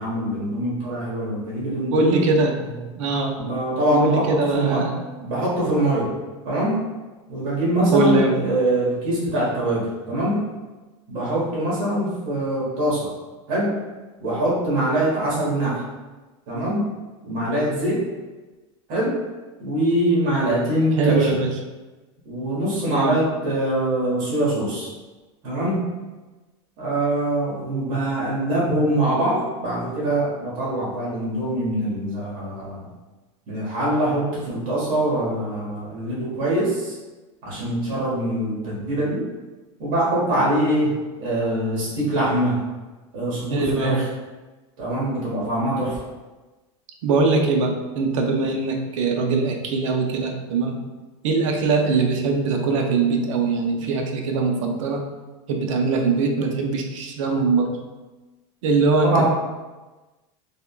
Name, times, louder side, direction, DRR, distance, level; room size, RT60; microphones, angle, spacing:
voice 1, 0.0-2.2 3.4-4.9 5.2-6.1 6.4-6.8 7.3-10.4 11.1-13.1 13.5-13.8 14.2-15.8 16.5-16.9 17.2-18.0 18.9-19.2 19.6-21.4 22.2-24.9 25.4-25.9 26.8-32.9 33.5-36.9 37.4-39.2 39.8-40.9 41.2-42.6 43.1-44.0 44.8-46.0 59.0-59.3, right 1 dB, 50° right, -7 dB, 1.3 m, -23 dB
voice 2, 1.9-2.6 3.0-3.4 3.9-5.0 7.9-8.4 21.0-21.5 22.9-23.2 43.5-44.0 47.0-50.8 51.2-55.0 55.5-57.7 58.6-59.3, right 3 dB, 85° right, 3 dB, 0.5 m, -21 dB
3.5 x 2.2 x 2.3 m, 1.2 s
supercardioid pair, 140°, 16 cm